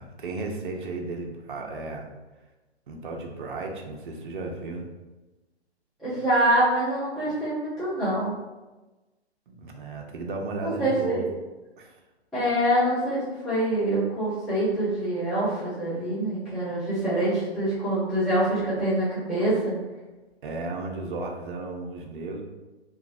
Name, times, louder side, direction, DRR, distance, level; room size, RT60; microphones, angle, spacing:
voice 1, 0.0-2.1 2.9-4.9 9.5-11.3 11.8-12.0 20.4-22.4, right 3 dB, 50° right, 2 dB, 0.5 m, -34 dB
voice 2, 6.0-8.3 10.6-11.2 12.3-19.7, right 1 dB, ahead, -15 dB, 0.4 m, -25 dB
3.0 x 2.2 x 2.5 m, 1.1 s
figure-of-eight pair, 135°, 33 cm